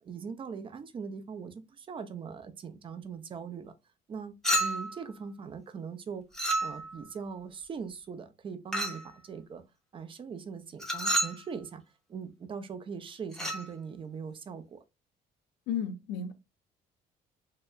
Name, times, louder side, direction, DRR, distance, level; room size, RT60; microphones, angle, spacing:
voice 1, 0.0-3.7 4.1-6.3 6.6-9.6 9.9-11.8 12.1-14.8, right 6 dB, 30° right, 0.5 m, -41 dB
Chink clink, 4.4-5.0 6.3-7.0 8.7-9.1 10.8-11.4 13.3-13.7, right 1 dB, 5° left, 0.7 m, -30 dB
voice 2, 15.7-16.3, left 7 dB, 80° left, 0.5 m, -33 dB
2.8 x 2.1 x 2.3 m
cardioid pair, 110°, 17 cm